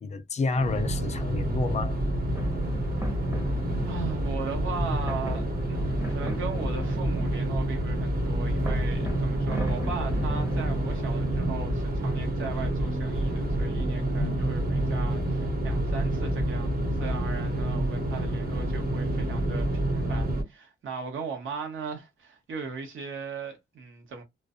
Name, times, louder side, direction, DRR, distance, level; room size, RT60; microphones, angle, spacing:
voice 1, 0.0-1.9 14.2-14.4, left 3 dB, 35° left, 0.4 m, -29 dB
sound 1, 0.5-20.4, right 1 dB, 45° right, 1.1 m, -28 dB
sound 2, 2.3-11.3, right 1 dB, 15° right, 0.6 m, -39 dB
voice 2, 3.8-24.2, right 5 dB, 70° right, 1.1 m, -38 dB
2.4 x 2.1 x 2.5 m
wide cardioid pair, 120°, 21 cm